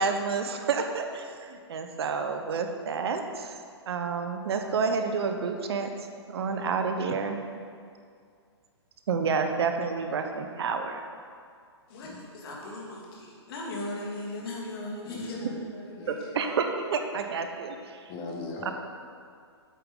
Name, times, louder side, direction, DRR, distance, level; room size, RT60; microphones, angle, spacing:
voice 1, 0.0-3.5 3.9-5.9 6.3-7.4 9.1-11.0 16.1-18.0 18.6-18.7, right 5 dB, 65° right, 6 dB, 0.9 m, -29 dB
voice 2, 11.9-16.6, left 1 dB, 55° left, -3 dB, 2.4 m, -38 dB
voice 3, 15.0-15.6 16.0-16.1 18.1-18.7, left 3 dB, 35° left, -1 dB, 1.7 m, -39 dB
8.4 x 7.8 x 3.8 m, 2.2 s
hypercardioid pair, 125°, 15 cm